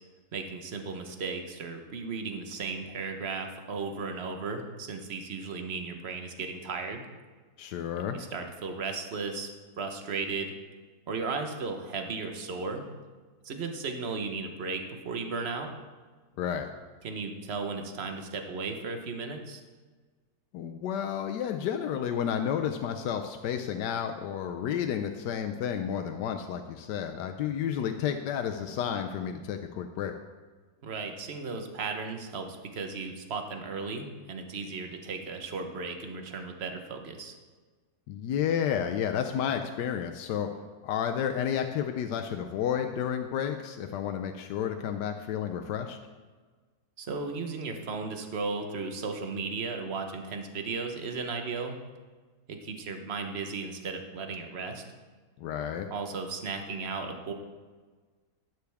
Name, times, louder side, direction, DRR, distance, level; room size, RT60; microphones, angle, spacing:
voice 1, 0.3-7.0 8.1-9.5 9.8-10.5 11.1-12.8 13.4-15.7 17.0-19.6 30.8-37.3 47.0-51.7 52.5-54.8 55.9-57.3, right 4 dB, 45° right, 5 dB, 1.1 m, -35 dB
voice 2, 7.6-8.2 16.4-16.7 20.5-30.1 38.1-40.5 40.8-46.0 55.4-55.9, left 8 dB, 90° left, 5 dB, 1.2 m, -31 dB
11.5 x 9.5 x 3.5 m, 1.4 s
omnidirectional pair, 1.8 m